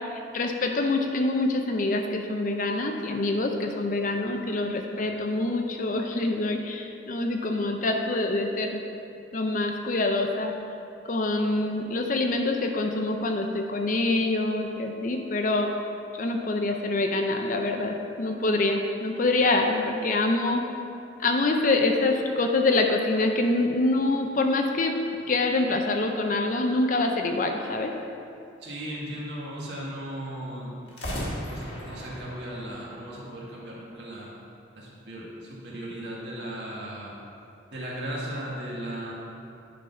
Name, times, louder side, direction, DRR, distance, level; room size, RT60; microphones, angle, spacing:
voice 1, 0.3-8.8 9.3-10.5 11.1-15.7 16.2-20.6 21.2-25.0 25.3-27.9, left 2 dB, 45° left, 3 dB, 0.5 m, -25 dB
sound 1, 25.0-26.8 30.9-34.0, equal, 70° left, 1.7 m, -39 dB
voice 2, 28.6-34.3 34.7-37.1 37.7-39.1, right 1 dB, 60° right, -5 dB, 1.8 m, -37 dB
10.0 x 4.0 x 5.6 m, 2.7 s
head